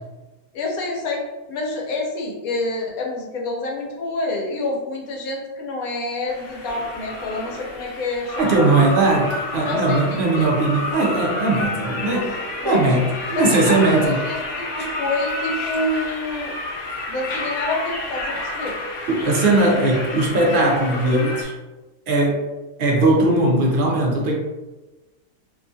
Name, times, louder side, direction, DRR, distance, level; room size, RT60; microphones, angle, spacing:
voice 1, 0.5-8.9 9.7-10.0 10.3-10.5 12.6-12.9 13.4-16.6 17.1-18.8, left 2 dB, 85° left, 0 dB, 1.1 m, -27 dB
sound 1, 6.3-21.4, left 2 dB, 60° left, 0.6 m, -30 dB
voice 2, 8.4-12.3 12.6-14.2 19.1-21.5 22.1-22.5 22.8-24.3, right 2 dB, 65° right, -2 dB, 0.5 m, -19 dB
2.7 x 2.3 x 2.5 m, 1.1 s
omnidirectional pair, 1.5 m